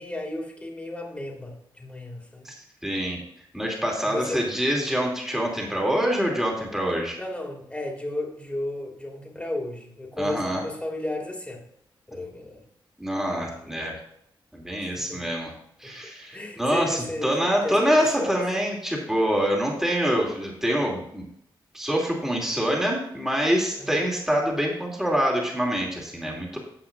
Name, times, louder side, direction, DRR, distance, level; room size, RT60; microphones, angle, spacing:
voice 1, 0.0-2.5 4.0-4.4 6.9-11.6 12.1-12.6 13.3-13.7 14.8-15.2 15.8-15.9 16.3-18.5 23.8-24.0, left 1 dB, 15° left, 0 dB, 2.4 m, -34 dB
voice 2, 2.8-3.2 3.5-7.2 10.2-10.6 13.0-13.9 14.5-15.5 15.8-21.2 21.7-26.6, equal, 5° right, -2 dB, 2.7 m, -25 dB
16.0 x 5.7 x 2.6 m, 0.73 s
cardioid pair, 80°, 9 cm